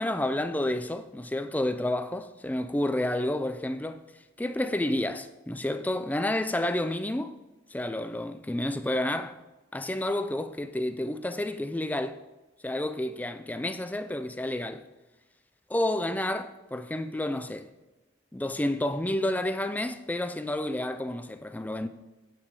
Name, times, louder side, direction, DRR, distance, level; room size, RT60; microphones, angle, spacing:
voice 1, 0.0-4.0 4.4-7.3 7.7-9.4 9.7-12.2 12.6-14.8 15.7-17.7 18.3-21.9, left 1 dB, 10° left, 0.3 m, -30 dB
8.7 x 6.0 x 4.7 m
head